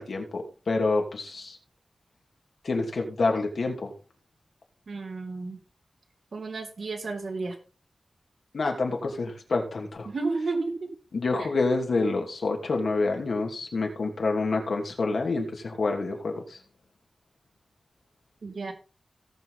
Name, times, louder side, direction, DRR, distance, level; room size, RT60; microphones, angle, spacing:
voice 1, 0.0-1.6 2.6-3.9 8.5-10.1 11.1-16.6, left 3 dB, 70° left, 2 dB, 2.8 m, -27 dB
voice 2, 4.9-5.6 6.3-7.5 10.0-10.9 11.4-11.5 18.4-18.7, right 3 dB, 70° right, 2 dB, 3.0 m, -32 dB
18.0 x 6.2 x 4.0 m, 0.36 s
wide cardioid pair, 115°, 0 cm